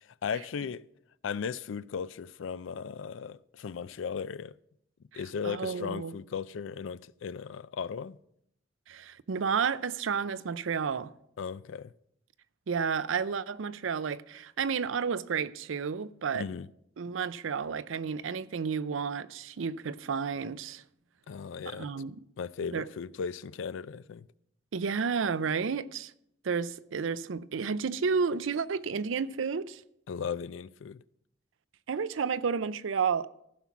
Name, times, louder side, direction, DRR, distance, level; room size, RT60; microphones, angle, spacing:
voice 1, 0.2-0.8 1.2-4.5 5.1-8.2 11.4-11.9 16.3-16.7 21.3-21.9 22.4-24.3 30.1-31.0, left 6 dB, 80° left, 0.4 m, -36 dB
voice 2, 5.1-6.1 8.9-11.1 12.7-16.5 17.0-20.8 21.7-22.2 22.7-22.9 24.7-26.1 26.4-29.8 31.9-33.3, right 6 dB, 85° right, 0.5 m, -31 dB
15.0 x 5.8 x 6.0 m
head